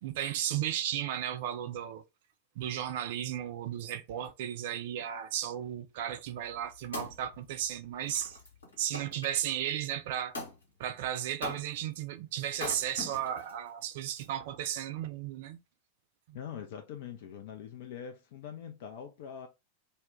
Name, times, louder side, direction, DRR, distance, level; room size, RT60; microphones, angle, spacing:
voice 1, 0.0-2.0 2.6-8.4 8.8-10.3 10.8-15.6 16.3-16.4, right 11 dB, 50° right, 0.3 m, -34 dB
Wood, 6.3-9.3 10.3-10.6 11.4-11.9 12.5-13.5 14.2-14.3, left 2 dB, 75° left, 1.1 m, -42 dB
voice 2, 16.3-19.5, left 8 dB, 50° left, 0.3 m, -43 dB
2.1 x 2.0 x 3.5 m
figure-of-eight pair, 90°, 0 cm